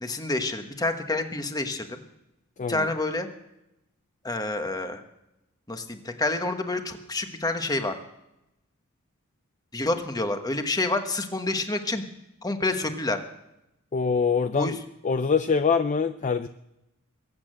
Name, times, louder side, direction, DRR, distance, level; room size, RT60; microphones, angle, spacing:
voice 1, 0.0-2.0 2.7-3.3 4.2-5.0 5.7-7.9 9.7-12.0 12.4-13.2 14.5-14.7, left 2 dB, 15° left, 6 dB, 1.2 m, -28 dB
voice 2, 2.6-2.9 13.9-14.8 15.0-16.5, left 5 dB, 35° left, 10 dB, 0.5 m, -24 dB
21.5 x 8.6 x 7.6 m, 0.89 s
head